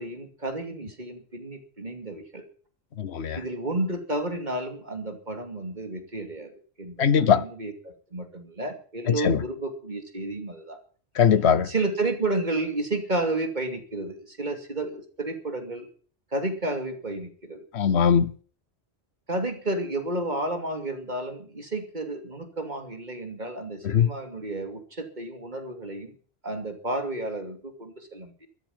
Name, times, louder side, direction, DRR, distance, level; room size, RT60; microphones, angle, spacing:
voice 1, 0.0-2.4 3.4-6.5 6.8-10.8 11.6-15.9 16.3-17.6 19.3-26.1 26.4-28.5, right 2 dB, 45° right, 2.8 m, -31 dB
voice 2, 3.0-3.4 7.0-7.4 9.1-9.4 11.2-11.7 17.7-18.3 23.8-24.1, left 7 dB, 85° left, 1.2 m, -20 dB
14.0 x 12.0 x 7.2 m
omnidirectional pair, 1.1 m